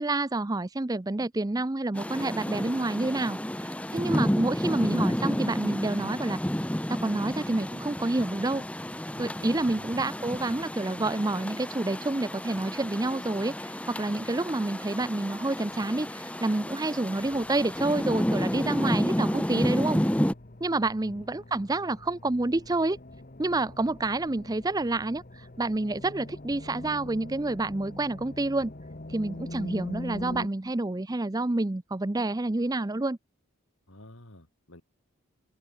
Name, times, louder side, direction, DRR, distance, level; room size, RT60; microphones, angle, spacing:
voice 1, 0.0-6.4 6.9-8.6 9.2-20.0 20.6-23.0 23.4-28.7 29.1-33.2, right 2 dB, 15° right, 0.5 m, -28 dB
Rain, 1.9-20.3, equal, 5° left, 1.1 m, -31 dB
voice 2, 9.1-9.9 21.0-21.3 33.9-34.8, left 1 dB, 65° left, 3.2 m, -50 dB
sound 1, 17.2-30.5, left 1 dB, 40° left, 1.3 m, -43 dB
head